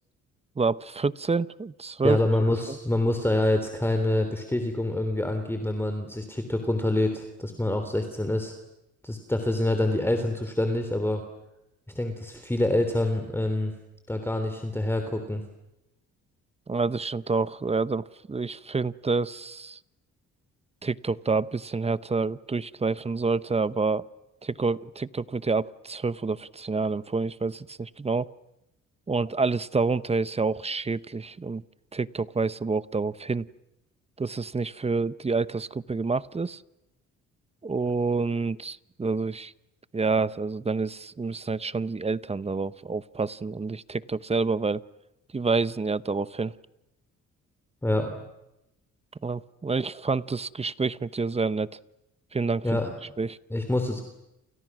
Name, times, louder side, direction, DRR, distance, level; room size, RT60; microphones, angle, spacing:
voice 1, 0.6-2.2 16.7-19.8 20.8-24.0 24.4-28.3 29.1-31.6 31.9-33.5 34.2-36.6 37.6-39.5 39.9-44.8 45.3-46.5 49.2-51.7 52.3-52.8 53.2-53.4, right 4 dB, 20° right, 17 dB, 0.9 m, -28 dB
voice 2, 2.0-8.5 9.0-11.2 11.9-13.7 14.1-15.4 47.8-48.2 52.6-52.9 53.5-54.0, left 1 dB, 10° left, 6 dB, 3.4 m, -26 dB
29.5 x 29.0 x 6.2 m, 0.88 s
cardioid pair, 90°, 30 cm